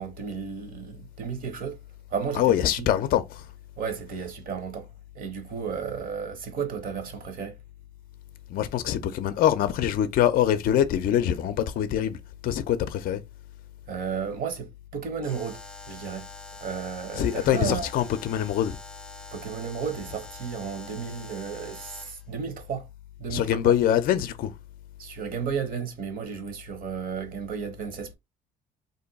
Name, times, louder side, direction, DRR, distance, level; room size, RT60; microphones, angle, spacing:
voice 1, 0.0-1.8 2.1-2.9 3.8-4.9 5.1-7.6 13.9-15.6 15.9-16.3 16.6-17.9 19.3-22.9 23.2-23.7 25.0-28.1, right 6 dB, 55° right, 0.9 m, -33 dB
voice 2, 2.3-3.4 8.5-12.2 12.4-13.2 17.1-18.8 23.3-24.5, left 10 dB, 55° left, 0.4 m, -24 dB
Alarm, 15.2-22.3, left 2 dB, 5° left, 0.5 m, -45 dB
2.6 x 2.2 x 3.9 m
cardioid pair, 110°, 17 cm